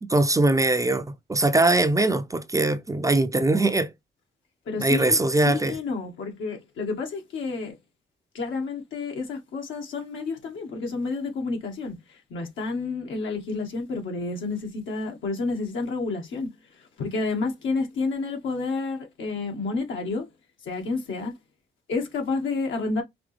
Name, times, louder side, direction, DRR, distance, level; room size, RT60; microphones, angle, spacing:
voice 1, 0.0-3.9 4.8-5.7, right 2 dB, 15° right, 0.6 m, -21 dB
voice 2, 4.7-5.2 5.5-7.8 8.3-12.0 12.3-16.5 17.0-20.3 20.6-21.3 21.9-23.0, left 3 dB, 75° left, 1.8 m, -30 dB
5.1 x 3.0 x 3.3 m
cardioid pair, 90°, 20 cm